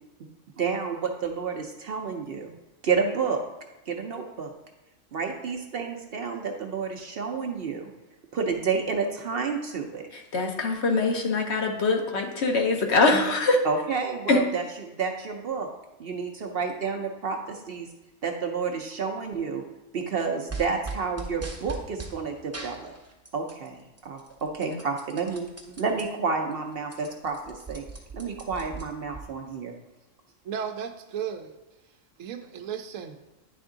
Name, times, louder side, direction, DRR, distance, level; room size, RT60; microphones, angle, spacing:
voice 1, 0.6-2.5 2.8-3.4 3.9-4.5 5.1-7.9 8.3-10.0 13.6-15.7 16.0-17.9 18.2-19.6 19.9-22.9 23.3-27.8 28.1-29.7, right 5 dB, 55° right, 3 dB, 0.7 m, -30 dB
voice 2, 10.3-13.6 14.3-14.4 24.7-24.8, left 3 dB, 60° left, 2 dB, 1.1 m, -23 dB
sound 1, 20.5-22.2 22.5-23.7 24.0-26.0 26.5-26.6 26.8-29.2, right 3 dB, 15° right, 0.7 m, -39 dB
voice 3, 30.4-31.5 32.2-33.2, right 8 dB, 80° right, 7 dB, 1.0 m, -34 dB
10.0 x 3.5 x 3.7 m, 1.1 s
omnidirectional pair, 1.4 m